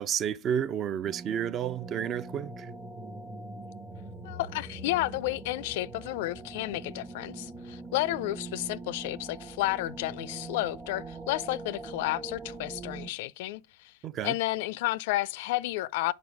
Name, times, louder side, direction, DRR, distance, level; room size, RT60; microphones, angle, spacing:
voice 1, 0.0-2.7 14.0-14.3, right 9 dB, 35° right, 0.4 m, -31 dB
sound 1, 1.0-13.1, right 2 dB, 15° right, 0.8 m, -43 dB
voice 2, 4.2-13.9 14.2-16.1, left 17 dB, 60° left, 0.3 m, -31 dB
5.4 x 4.5 x 4.7 m
hypercardioid pair, 105°, 0 cm